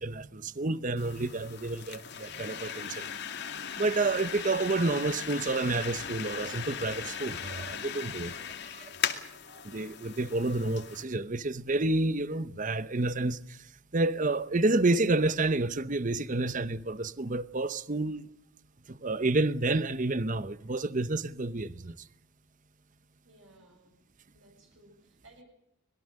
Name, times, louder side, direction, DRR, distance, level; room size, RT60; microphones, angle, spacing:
voice 1, 0.0-3.1 3.8-8.3 9.6-13.7 13.9-18.2 18.9-22.0, right 2 dB, 35° right, 0.8 m, -29 dB
sound 1, 1.0-11.0, left 8 dB, 50° left, 2.4 m, -38 dB
voice 2, 8.2-8.7 23.2-24.0 24.3-25.4, right 1 dB, 60° right, 6.5 m, -58 dB
25.5 x 21.0 x 6.5 m
head